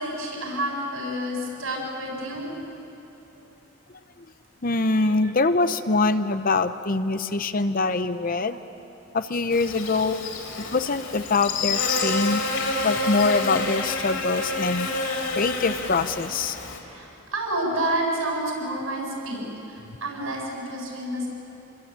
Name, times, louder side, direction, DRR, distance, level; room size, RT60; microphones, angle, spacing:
voice 1, 0.0-2.7 3.3-3.4 4.6-4.7 5.0-5.3 16.9-21.3, right 1 dB, 75° right, 0 dB, 7.6 m, -30 dB
voice 2, 4.6-8.6 9.1-10.2 10.6-12.4 12.8-14.9 15.4-16.6, left 3 dB, 40° left, 11 dB, 0.7 m, -24 dB
Buzz, 9.5-16.8, left 3 dB, 65° left, 3.8 m, -28 dB
27.5 x 22.0 x 8.9 m, 2.8 s
head